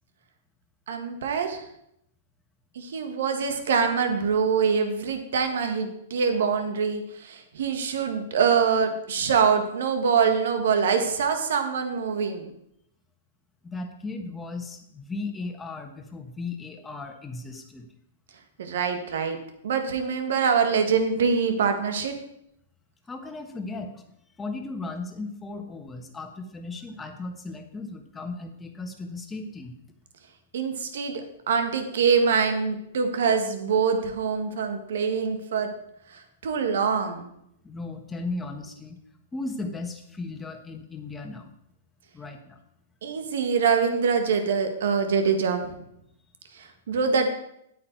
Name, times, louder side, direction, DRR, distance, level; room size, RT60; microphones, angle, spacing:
voice 1, 0.9-1.6 2.7-12.5 18.6-19.4 19.6-22.1 30.5-35.7 36.1-37.3 43.0-45.7 46.5-47.3, right 6 dB, 70° right, 6 dB, 1.6 m, -24 dB
voice 2, 13.6-17.9 23.1-24.0 24.4-29.7 37.6-39.0 39.3-41.5 42.1-42.6, left 3 dB, 10° left, 4 dB, 1.3 m, -36 dB
9.8 x 8.4 x 4.7 m, 0.77 s
hypercardioid pair, 130°, 0 cm